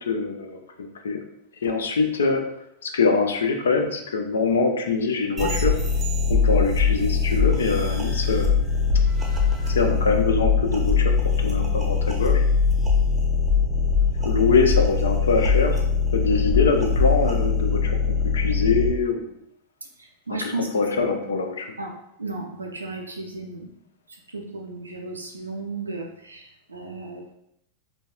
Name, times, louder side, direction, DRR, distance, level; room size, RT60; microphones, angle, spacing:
voice 1, 0.0-1.2 1.6-2.4 2.8-5.7 6.3-8.6 9.7-12.4 14.2-15.8 16.1-19.2 20.3-21.7, left 4 dB, 65° left, 5 dB, 0.4 m, -24 dB
sound 1, 5.4-18.9, left 5 dB, 15° right, 0.6 m, -22 dB
voice 2, 20.0-20.7 21.2-21.4 21.8-21.9 22.2-23.7 24.1-27.3, right 3 dB, 80° right, 0 dB, 0.4 m, -34 dB
3.9 x 2.2 x 2.2 m, 0.76 s
figure-of-eight pair, 90°, 0 cm